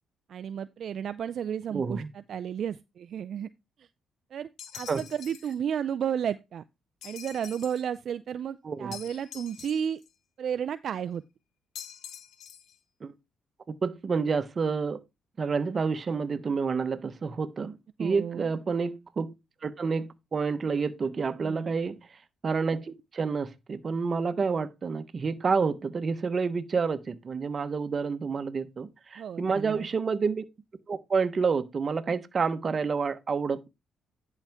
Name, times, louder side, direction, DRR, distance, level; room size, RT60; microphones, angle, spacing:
voice 1, 0.3-3.5 3.8-3.9 4.3-4.5 4.8-6.6 7.0-10.0 10.4-11.2 18.0-18.5 21.4-21.7 29.2-29.9, right 8 dB, 60° right, 0.4 m, -33 dB
voice 2, 1.7-2.1 4.9-5.0 8.6-8.9 13.0-13.1 13.7-15.0 15.4-19.3 19.6-22.0 22.4-30.4 30.9-33.7, right 5 dB, 40° right, 1.0 m, -29 dB
sound 1, 4.6-5.6 7.0-7.9 8.9-10.1 11.8-12.8, left 9 dB, 75° left, 1.2 m, -45 dB
10.5 x 5.8 x 3.5 m
cardioid pair, 90°, 0 cm